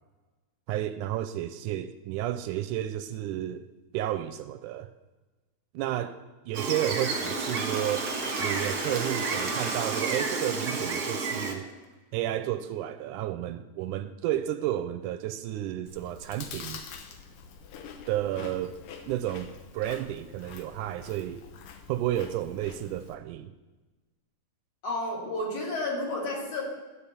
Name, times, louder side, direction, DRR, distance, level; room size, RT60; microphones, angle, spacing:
voice 1, 0.7-3.7 3.9-4.9 5.7-8.1 8.4-11.7 12.1-16.8 18.1-18.8 19.1-21.5 21.9-23.5, right 12 dB, 80° right, 1.9 m, -32 dB
Gull seagull, 6.5-11.5, right 4 dB, 45° right, 1.3 m, -31 dB
Applause / Crowd, 6.8-11.8, right 2 dB, 25° right, 0.9 m, -39 dB
Chewing mastication, 15.9-23.2, left 6 dB, 75° left, 2.5 m, -46 dB
voice 2, 24.8-26.6, left 2 dB, 50° left, 3.7 m, -31 dB
12.5 x 5.2 x 8.5 m
omnidirectional pair, 3.8 m